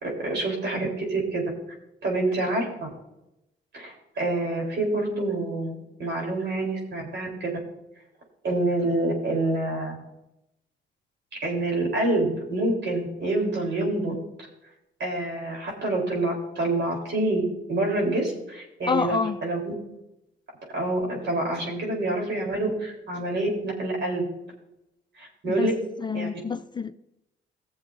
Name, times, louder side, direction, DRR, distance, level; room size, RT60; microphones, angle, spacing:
voice 1, 0.0-1.4 2.0-2.9 3.7-7.6 8.4-10.0 11.4-14.1 15.0-17.4 17.7-19.7 20.7-24.2 25.2-25.7 26.1-26.4, right 2 dB, 65° right, 3.9 m, -27 dB
voice 2, 18.9-19.4 25.5-25.7 26.0-26.9, left 5 dB, 25° left, 0.5 m, -27 dB
18.0 x 7.1 x 2.7 m
cardioid pair, 90°, 20 cm